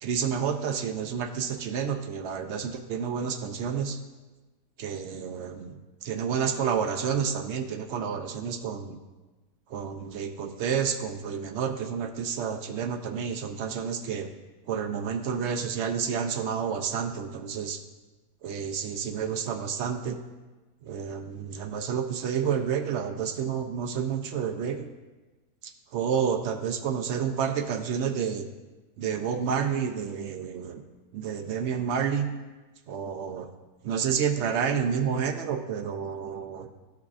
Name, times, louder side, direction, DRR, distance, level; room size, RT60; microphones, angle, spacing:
voice 1, 0.0-4.0 4.8-9.0 9.7-14.3 14.7-17.8 18.4-20.2 20.8-24.9 25.6-28.5 29.0-30.8 31.1-32.3 32.9-33.5 33.8-36.7, right 7 dB, 75° right, 6 dB, 0.6 m, -30 dB
14.0 x 4.6 x 2.4 m, 1.2 s
omnidirectional pair, 1.7 m